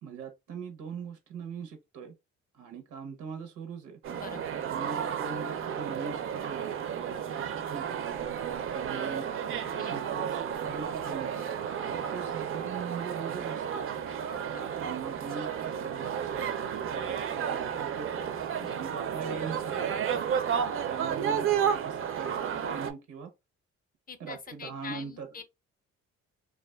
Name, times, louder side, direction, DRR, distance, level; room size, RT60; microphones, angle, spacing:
voice 1, 0.0-2.1 2.5-4.0 4.6-9.3 9.9-11.5 11.9-13.9 14.5-18.2 18.7-20.3 20.8-23.3 24.2-25.3, right 5 dB, 90° right, 0.7 m, -41 dB
sound 1, 4.0-22.9, right 8 dB, 45° right, 0.4 m, -32 dB
voice 2, 4.1-4.5 9.8-10.0 14.3-14.7 18.5-18.8 24.1-25.4, left 6 dB, 30° left, 0.5 m, -45 dB
2.4 x 2.3 x 2.2 m
cardioid pair, 100°, 29 cm